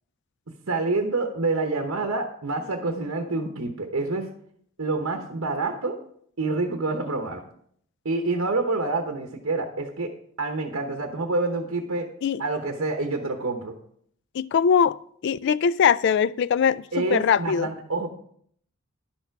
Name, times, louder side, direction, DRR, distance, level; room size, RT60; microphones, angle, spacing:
voice 1, 0.7-4.3 4.8-5.9 6.4-7.4 8.0-10.1 10.4-12.1 12.4-13.7 16.9-18.1, right 3 dB, 70° right, 1.0 m, -27 dB
voice 2, 14.3-15.0 15.2-17.7, left 7 dB, 55° left, 0.3 m, -21 dB
11.0 x 7.2 x 4.6 m
head